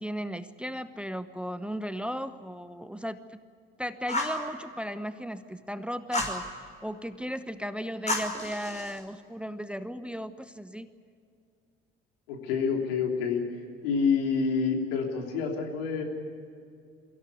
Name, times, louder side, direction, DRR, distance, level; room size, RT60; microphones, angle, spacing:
voice 1, 0.0-3.2 3.8-6.5 6.8-10.9, equal, 5° right, 12 dB, 1.0 m, -36 dB
Fire, 4.1-4.4 6.1-6.4 8.1-9.0, left 1 dB, 25° left, 5.4 m, -31 dB
voice 2, 12.3-13.4 13.8-16.0, left 5 dB, 75° left, 1 dB, 3.4 m, -27 dB
23.0 x 16.5 x 9.6 m, 2.3 s
hypercardioid pair, 55°, 29 cm